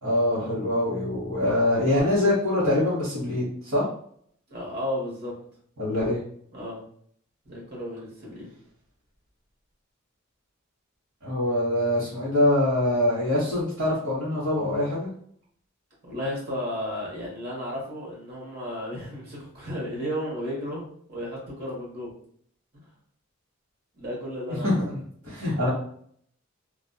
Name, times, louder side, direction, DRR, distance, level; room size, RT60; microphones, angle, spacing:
voice 1, 0.0-3.9 5.8-6.2 11.2-15.1 24.6-25.0 25.3-25.7, left 1 dB, 85° right, -9 dB, 1.1 m, -24 dB
voice 2, 4.5-5.3 6.5-6.8 7.4-8.5 16.0-22.1 22.7-22.9 24.0-24.8 25.5-25.6, equal, 50° right, -4 dB, 1.2 m, -33 dB
2.8 x 2.3 x 2.2 m, 0.62 s
head